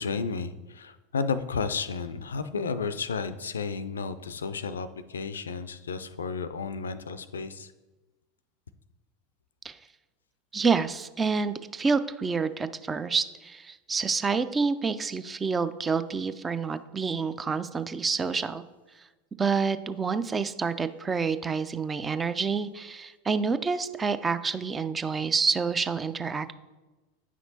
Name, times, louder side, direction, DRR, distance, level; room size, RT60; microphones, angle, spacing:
voice 1, 0.0-7.7, left 5 dB, 75° left, 13 dB, 0.3 m, -32 dB
voice 2, 10.5-18.6 19.4-26.5, right 5 dB, 20° right, 13 dB, 0.4 m, -28 dB
9.3 x 5.9 x 2.7 m, 1.2 s
figure-of-eight pair, 80°, 0 cm